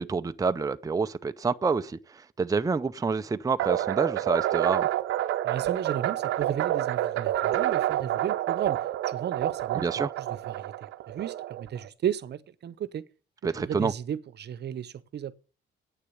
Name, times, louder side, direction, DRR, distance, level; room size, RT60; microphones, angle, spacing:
voice 1, 0.0-4.9 9.7-10.1 13.4-13.9, right 4 dB, 15° right, 0.6 m, -28 dB
sound 1, 3.6-11.9, right 13 dB, 85° right, 0.7 m, -28 dB
voice 2, 5.4-8.8 9.1-9.8 10.3-10.7 11.1-13.0 13.6-15.3, right 9 dB, 60° right, 0.9 m, -34 dB
9.0 x 6.8 x 7.9 m
cardioid pair, 90°, 20 cm